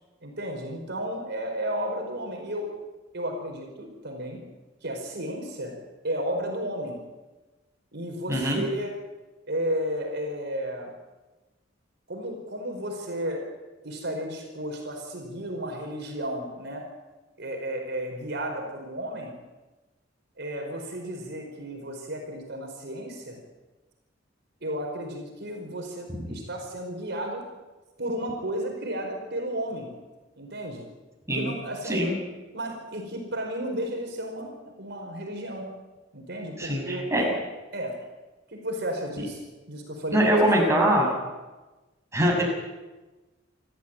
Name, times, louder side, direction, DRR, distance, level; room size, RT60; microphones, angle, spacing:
voice 1, 0.2-2.7 3.1-4.4 4.8-5.8 6.0-7.0 7.9-8.9 9.5-10.9 12.1-13.4 13.8-16.8 17.4-19.3 20.4-23.4 24.6-27.4 28.0-29.9 30.4-30.9 31.3-32.1 32.5-35.7 36.1-37.4 37.7-38.0 38.5-39.4 39.7-40.3 40.9-41.1, equal, 60° right, 2 dB, 5.0 m, -33 dB
voice 2, 8.3-8.6 31.3-31.5 31.8-32.2 36.6-37.3 40.1-41.1 42.1-42.4, right 1 dB, 15° right, -1 dB, 6.9 m, -22 dB
28.5 x 14.0 x 9.1 m, 1.2 s
head